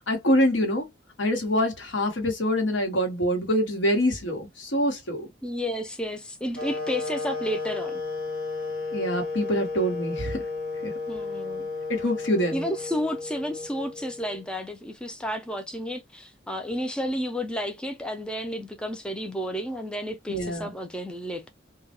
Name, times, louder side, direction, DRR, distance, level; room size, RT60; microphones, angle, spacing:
voice 1, 0.1-0.9 1.2-5.3 8.9-10.4 10.8-10.9 11.9-12.6 20.3-20.7, equal, 85° left, 1.1 m, -25 dB
voice 2, 5.4-8.0 11.1-11.7 12.5-21.5, equal, 5° left, 0.4 m, -32 dB
sound 1, 6.5-14.5, left 3 dB, 50° left, 1.0 m, -33 dB
2.3 x 2.0 x 2.8 m
head